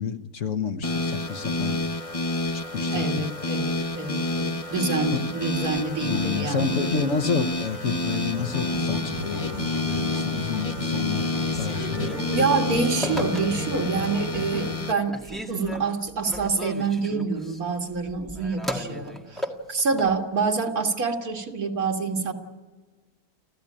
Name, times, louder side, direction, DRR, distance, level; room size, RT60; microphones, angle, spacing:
voice 1, 0.0-1.8 2.7-3.2 5.1-5.2 6.0-11.3 11.6-12.2, left 5 dB, 60° left, 8 dB, 1.4 m, -29 dB
sound 1, 0.8-14.9, left 2 dB, 25° left, 0.9 m, -29 dB
voice 2, 2.9-7.1 12.3-22.3, right 4 dB, 80° right, 3 dB, 2.5 m, -27 dB
sound 2, 8.3-14.7, right 1 dB, 50° right, 8.5 m, -35 dB
Telephone, 11.4-13.9 14.3-14.8 15.1-20.2, equal, ahead, 1.8 m, -36 dB
30.0 x 13.5 x 8.7 m, 1.3 s
omnidirectional pair, 1.5 m